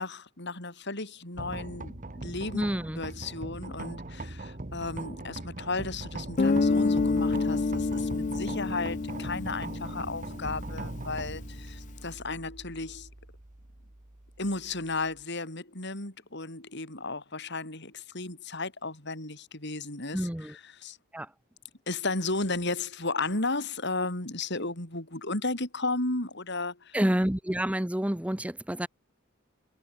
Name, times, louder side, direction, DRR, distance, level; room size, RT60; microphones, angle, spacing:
voice 1, 0.0-2.6 3.0-13.1 14.4-21.0 21.9-27.0, left 3 dB, 60° left, 7.7 m, -34 dB
sound 1, 1.4-15.2, right 2 dB, 40° right, 1.4 m, -40 dB
voice 2, 2.5-3.0 20.1-20.5 21.1-21.3 26.9-28.9, equal, 5° right, 0.8 m, -28 dB
Guitar, 6.4-10.9, left 3 dB, 40° left, 0.5 m, -28 dB
head